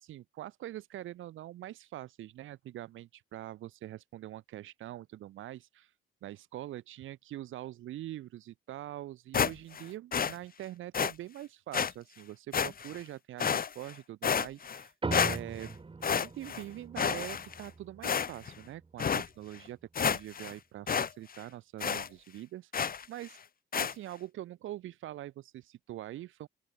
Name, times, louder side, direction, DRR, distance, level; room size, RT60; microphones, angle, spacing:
voice 1, 0.0-5.9 6.2-14.9 15.2-15.7 16.0-23.4 23.7-26.5, right 14 dB, 80° right, 3.3 m, -44 dB
sound 1, 9.3-9.8 10.1-10.3 10.9-11.1 11.7-11.9 12.5-13.0 13.4-13.9 14.2-14.8 15.1-15.7 16.0-16.6 17.0-17.7 18.0-18.5 19.0-19.3 19.7-19.8 19.9-20.5 20.9-21.1 21.4-21.5 21.8-22.1 22.7-23.0 23.7-23.9, left 7 dB, 45° left, 3.7 m, -30 dB
sound 2, 15.0-19.8, right 4 dB, 25° right, 3.1 m, -42 dB
open air
cardioid pair, 90°, 20 cm